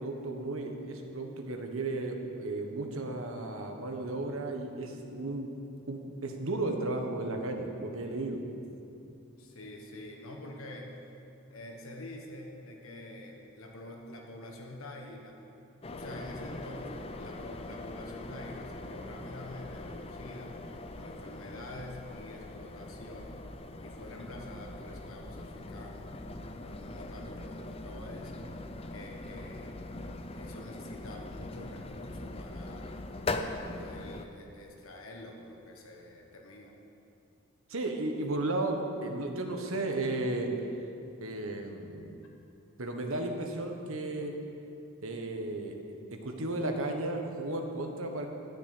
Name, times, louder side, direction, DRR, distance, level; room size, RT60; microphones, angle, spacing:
voice 1, 0.0-5.5 5.9-8.4 37.7-40.6 41.2-42.2 42.8-44.3 45.0-45.8 46.1-48.3, right 2 dB, 75° right, 3 dB, 1.4 m, -34 dB
voice 2, 9.4-11.0 11.5-15.4 15.9-20.6 20.9-23.5 23.8-26.1 26.6-28.5 28.9-29.8 30.3-32.9 33.4-36.7, left 1 dB, 75° left, 1 dB, 1.3 m, -46 dB
sound 1, 15.8-34.3, left 2 dB, 25° left, 0.5 m, -41 dB
13.0 x 6.6 x 8.5 m, 2.7 s
head